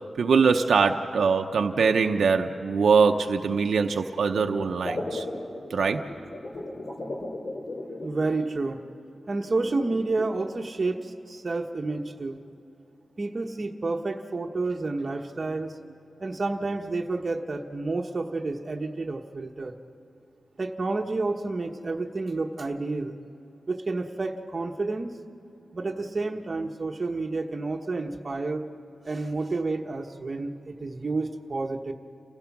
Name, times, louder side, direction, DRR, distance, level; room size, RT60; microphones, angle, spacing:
voice 1, 0.2-5.2 5.7-6.0, right 5 dB, 75° right, 4 dB, 0.8 m, -22 dB
sound 1, 4.6-8.8 9.6-10.3, left 2 dB, 45° left, 3.0 m, -36 dB
voice 2, 8.0-8.8 9.3-12.4 13.2-15.8 16.2-19.7 20.6-23.2 23.7-25.1 25.7-28.7 29.0-31.9, right 3 dB, 35° right, 3 dB, 1.1 m, -30 dB
30.0 x 16.0 x 6.0 m, 2.8 s
wide cardioid pair, 160°, 0 cm